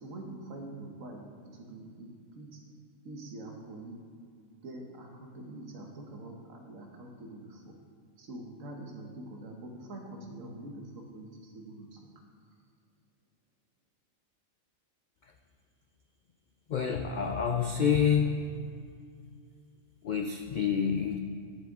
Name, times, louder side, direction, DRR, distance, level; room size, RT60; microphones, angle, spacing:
voice 1, 0.0-2.6 3.0-4.0 4.6-7.7 8.2-12.1, right 1 dB, 70° right, 2 dB, 1.4 m, -45 dB
voice 2, 16.7-18.4 20.0-21.2, left 7 dB, 90° left, 4 dB, 0.4 m, -27 dB
10.5 x 7.4 x 3.6 m, 2.2 s
omnidirectional pair, 1.4 m